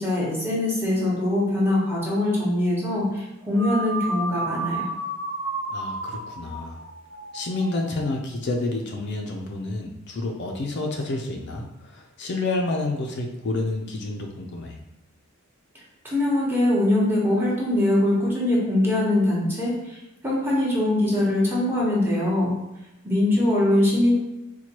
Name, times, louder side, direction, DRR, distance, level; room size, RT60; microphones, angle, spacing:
voice 1, 0.0-4.9 16.0-20.0 20.2-22.5 23.0-24.1, left 1 dB, 10° right, -6 dB, 1.0 m, -22 dB
sound 1, 3.5-8.1, right 2 dB, 45° right, 0.8 m, -32 dB
voice 2, 5.7-6.8 7.3-14.8, left 2 dB, 50° left, 1 dB, 0.4 m, -29 dB
4.3 x 2.2 x 2.9 m, 0.93 s
head